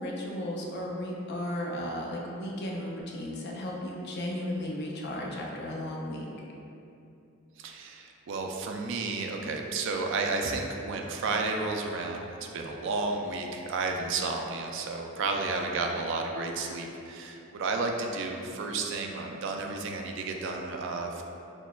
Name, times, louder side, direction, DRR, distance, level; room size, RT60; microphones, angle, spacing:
voice 1, 0.0-6.3, left 1 dB, 50° left, -2 dB, 0.5 m, -35 dB
voice 2, 7.6-12.3 12.5-21.2, right 3 dB, 60° right, 2 dB, 0.3 m, -32 dB
6.0 x 2.1 x 2.2 m, 2.8 s
head